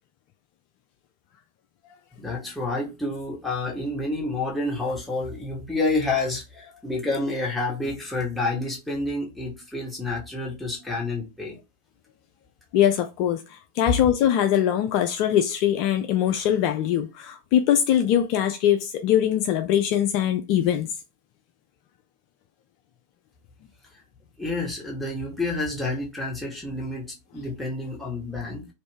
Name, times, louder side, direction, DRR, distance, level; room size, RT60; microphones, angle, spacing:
voice 1, 2.2-11.6 24.4-28.7, left 2 dB, 5° left, 1.5 m, -29 dB
voice 2, 12.7-20.9, left 10 dB, 50° left, 0.4 m, -22 dB
3.1 x 2.6 x 3.2 m
figure-of-eight pair, 90°, 0 cm